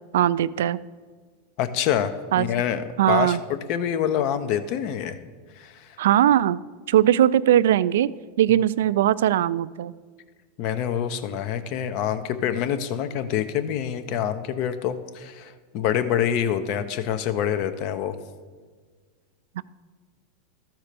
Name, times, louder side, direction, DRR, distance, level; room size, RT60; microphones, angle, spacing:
voice 1, 0.1-0.8 2.3-2.5 3.0-3.4 6.0-6.6 6.9-8.1 8.4-9.9 19.6-19.7, right 11 dB, 80° right, 16 dB, 0.3 m, -20 dB
voice 2, 1.6-2.1 2.4-2.8 3.1-5.2 5.6-5.9 10.6-18.2, left 9 dB, 50° left, 11 dB, 0.8 m, -26 dB
13.5 x 4.4 x 6.8 m, 1.5 s
supercardioid pair, 130°, 0 cm